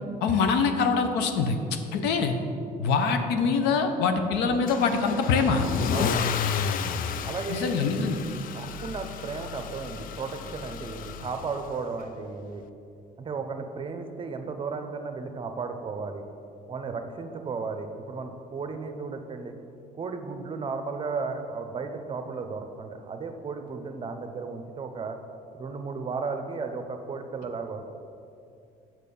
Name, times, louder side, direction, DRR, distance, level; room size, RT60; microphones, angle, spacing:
voice 1, 0.2-1.6 1.9-2.4 2.8-5.7 7.5-8.2, left 5 dB, 90° left, 7 dB, 0.7 m, -24 dB
Car / Engine starting / Accelerating revving vroom, 4.7-11.8, left 7 dB, 55° left, 0.4 m, -32 dB
voice 2, 7.2-7.7 8.5-12.6 13.2-16.2 16.7-19.5 19.9-25.2 25.5-27.9, right 4 dB, 30° right, 7 dB, 0.7 m, -34 dB
6.6 x 6.0 x 5.4 m, 2.6 s
cardioid pair, 110°, 17 cm